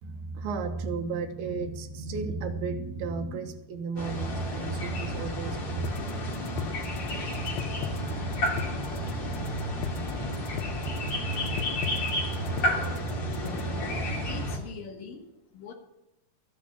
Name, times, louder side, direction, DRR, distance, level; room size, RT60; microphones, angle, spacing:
voice 1, 0.0-5.8, right 4 dB, 75° right, 5 dB, 3.0 m, -34 dB
sound 1, 4.0-14.6, equal, 40° left, 2.8 m, -31 dB
sound 2, 5.8-13.8, left 10 dB, 80° left, 2.6 m, -38 dB
voice 2, 13.9-15.7, left 5 dB, 65° left, 3 dB, 3.2 m, -44 dB
14.0 x 8.4 x 7.2 m, 0.91 s
omnidirectional pair, 4.6 m